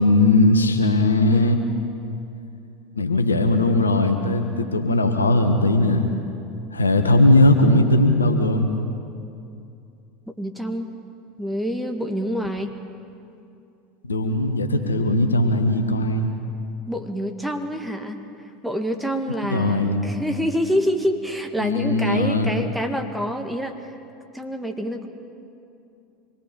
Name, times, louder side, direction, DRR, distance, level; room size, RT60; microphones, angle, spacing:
voice 1, 0.0-1.6 2.9-6.1 6.7-8.7 14.0-16.3 19.5-20.0 21.6-22.5, left 2 dB, 85° left, 5 dB, 1.5 m, -19 dB
voice 2, 10.4-10.9 11.4-12.7 14.6-14.9 16.9-18.2 18.6-23.8 24.3-25.1, equal, ahead, 4 dB, 1.8 m, -27 dB
26.0 x 20.5 x 5.4 m, 2.6 s
figure-of-eight pair, 80°, 0 cm